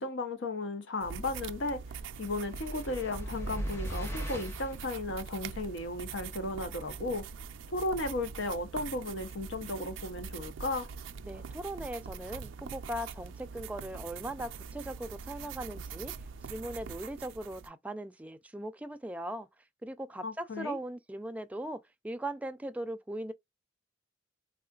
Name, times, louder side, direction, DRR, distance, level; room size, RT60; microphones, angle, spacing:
voice 1, 0.0-7.2 7.7-10.9 20.2-20.8, left 2 dB, 70° left, 0.7 m, -35 dB
sound 1, 1.0-17.7, right 6 dB, 85° right, 0.4 m, -43 dB
sound 2, 2.2-4.8, equal, 15° left, 0.7 m, -39 dB
voice 2, 11.2-16.1 16.5-19.5 19.8-23.3, right 1 dB, 10° right, 0.4 m, -39 dB
3.6 x 2.4 x 2.3 m
head